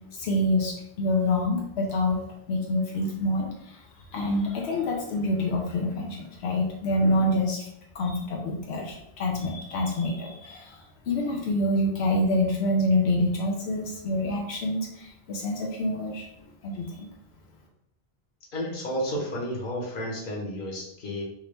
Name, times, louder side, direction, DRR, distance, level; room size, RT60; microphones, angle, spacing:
voice 1, 0.2-2.2 2.5-3.8 4.1-7.7 7.9-16.3 16.6-17.1, left 1 dB, 90° left, 0 dB, 0.9 m, -26 dB
voice 2, 18.5-21.2, equal, 55° left, -3 dB, 1.2 m, -31 dB
3.5 x 2.9 x 3.2 m, 0.76 s
omnidirectional pair, 1.1 m